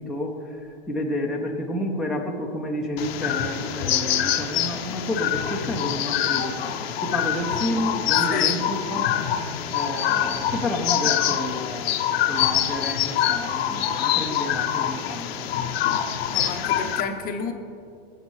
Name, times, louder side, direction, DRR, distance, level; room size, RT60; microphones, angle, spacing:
voice 1, 0.0-6.7 7.0-9.1 9.7-12.0 12.3-15.5, left 1 dB, ahead, -2 dB, 0.7 m, -30 dB
sound 1, 3.0-17.0, left 10 dB, 70° left, 0.8 m, -25 dB
voice 2, 8.1-8.6 16.3-17.5, left 5 dB, 30° left, 5 dB, 0.8 m, -31 dB
18.5 x 7.4 x 3.2 m, 2.6 s
hypercardioid pair, 125°, 31 cm